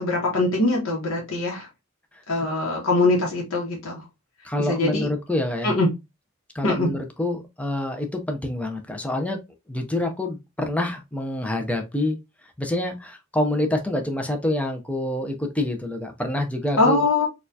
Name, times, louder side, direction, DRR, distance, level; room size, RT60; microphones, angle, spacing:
voice 1, 0.0-1.7 2.3-4.0 4.6-5.1 5.6-5.9 6.6-6.9 16.8-17.3, left 2 dB, 85° left, -1 dB, 0.9 m, -22 dB
voice 2, 4.4-5.7 6.5-9.4 9.7-12.2 12.6-17.0, left 1 dB, 5° left, 4 dB, 0.5 m, -27 dB
4.2 x 2.3 x 2.6 m, 0.23 s
head